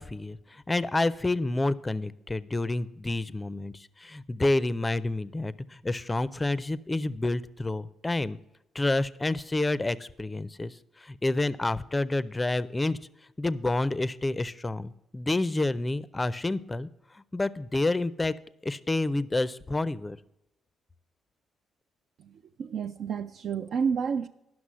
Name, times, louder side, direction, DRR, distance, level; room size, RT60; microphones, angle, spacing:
voice 1, 0.0-8.4 8.7-13.0 13.4-16.9 17.1-18.3 18.6-20.2, left 2 dB, 20° left, 0.4 m, -29 dB
voice 2, 22.6-24.3, right 6 dB, 65° right, 0.4 m, -29 dB
11.0 x 6.0 x 7.3 m
cardioid pair, 90°, 0 cm